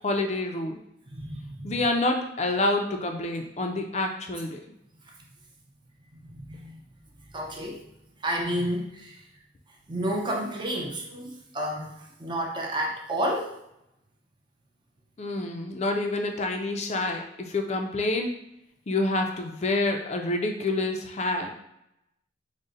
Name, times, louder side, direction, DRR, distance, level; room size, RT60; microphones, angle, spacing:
voice 1, 0.0-0.8 1.6-4.6 15.2-18.3 18.9-21.5, left 2 dB, 35° left, 4 dB, 0.4 m, -27 dB
voice 2, 1.1-1.8 6.1-6.9 7.3-7.8 8.2-9.2 9.9-13.6, right 1 dB, 25° right, 0 dB, 0.4 m, -31 dB
3.9 x 2.1 x 3.7 m, 0.83 s
head